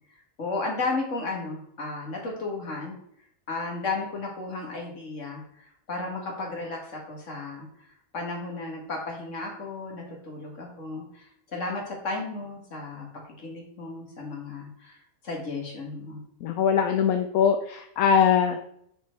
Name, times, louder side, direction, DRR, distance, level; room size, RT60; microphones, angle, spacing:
voice 1, 0.4-3.0 3.5-13.1 13.4-16.2, left 3 dB, 60° left, 0 dB, 2.1 m, -34 dB
voice 2, 16.4-18.7, left 7 dB, 80° left, 6 dB, 1.1 m, -22 dB
7.1 x 4.4 x 4.5 m, 0.70 s
omnidirectional pair, 1.5 m